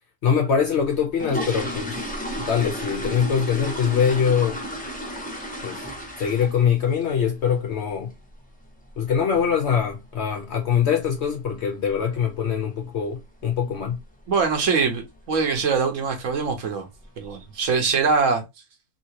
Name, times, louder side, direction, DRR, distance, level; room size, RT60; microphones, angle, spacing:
voice 1, 0.2-2.1 2.4-4.6 5.6-5.8 6.2-8.1 9.0-14.0, left 7 dB, 65° left, 0.7 m, -23 dB
sound 1, 0.8-6.7 7.0-7.3 7.6-7.7 8.1-8.2 8.6-8.8 9.1-9.2 9.8-9.9 10.1-10.3 10.8-11.1 11.4-11.5 11.9-12.1 12.4-12.5 12.9-13.0 13.7-14.0 14.3-14.6 15.0-15.1 15.5-15.6 16.4-16.5 16.9-17.4 17.9-18.0, equal, 10° left, 0.6 m, -33 dB
voice 2, 14.3-16.9 17.2-18.4, right 5 dB, 60° right, 1.0 m, -23 dB
2.8 x 2.7 x 2.8 m
omnidirectional pair, 1.6 m